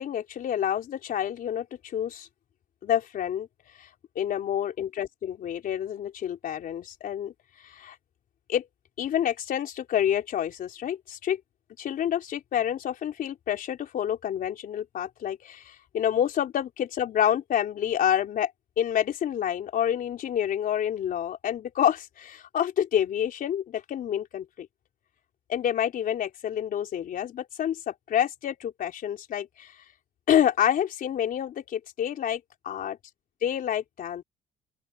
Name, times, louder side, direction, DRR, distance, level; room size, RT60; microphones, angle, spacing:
voice 1, 0.0-1.7 1.9-2.3 2.8-3.5 3.8-3.9 4.2-7.3 7.6-8.0 8.5-8.7 9.0-11.4 11.8-18.5 18.8-24.7 25.5-29.7 30.3-33.0 33.4-34.2, left 10 dB, 55° left, 4.0 m, -28 dB
open air
cardioid pair, 110°, 17 cm